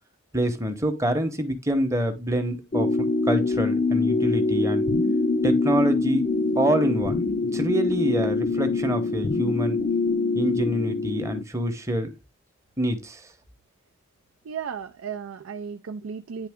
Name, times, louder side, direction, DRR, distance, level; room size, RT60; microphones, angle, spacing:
voice 1, 0.3-4.9 5.4-6.2 6.6-7.2 7.5-9.8 10.3-12.1 12.8-13.3, right 1 dB, 15° right, 0.8 m, -26 dB
sound 1, 2.7-11.4, left 3 dB, 40° left, 0.5 m, -24 dB
voice 2, 14.4-16.5, right 6 dB, 85° right, 0.4 m, -34 dB
9.6 x 3.3 x 3.5 m
head